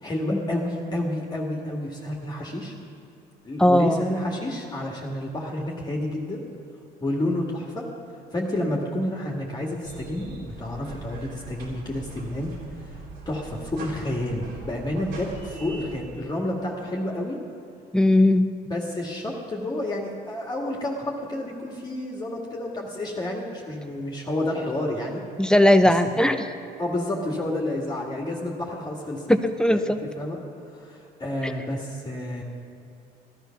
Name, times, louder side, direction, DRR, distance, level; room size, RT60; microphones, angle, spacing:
voice 1, 0.0-2.7 3.4-6.4 7.0-7.9 8.3-12.5 12.9-13.0 13.3-17.4 18.7-25.2 26.1-26.2 26.8-29.3 29.7-29.8 30.2-30.4 30.7-32.4, left 1 dB, 25° left, -1 dB, 1.9 m, -30 dB
voice 2, 3.6-4.0 17.9-18.5 25.4-26.5 29.3-30.0 31.4-31.5, left 1 dB, 5° left, 8 dB, 0.7 m, -18 dB
sound 1, 9.8-16.0, right 3 dB, 85° right, 3.7 m, -41 dB
15.0 x 12.0 x 5.8 m, 2.6 s
cardioid pair, 110°, 17 cm